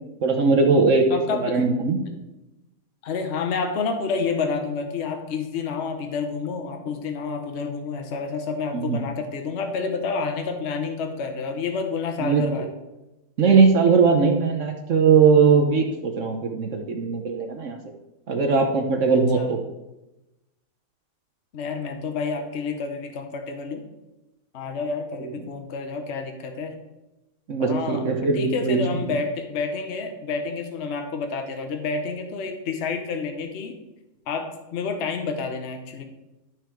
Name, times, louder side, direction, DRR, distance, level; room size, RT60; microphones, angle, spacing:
voice 1, 0.2-2.0 8.7-9.0 12.2-12.7 13.4-17.8 18.3-19.6 25.2-25.4 27.5-29.1, right 5 dB, 55° right, 4 dB, 1.1 m, -20 dB
voice 2, 1.1-1.6 3.0-12.7 19.3-19.5 21.5-23.8 24.5-26.8 27.6-28.0 28.3-33.8 34.3-36.0, left 4 dB, 50° left, 5 dB, 1.1 m, -29 dB
12.0 x 4.5 x 4.5 m, 0.98 s
omnidirectional pair, 1.7 m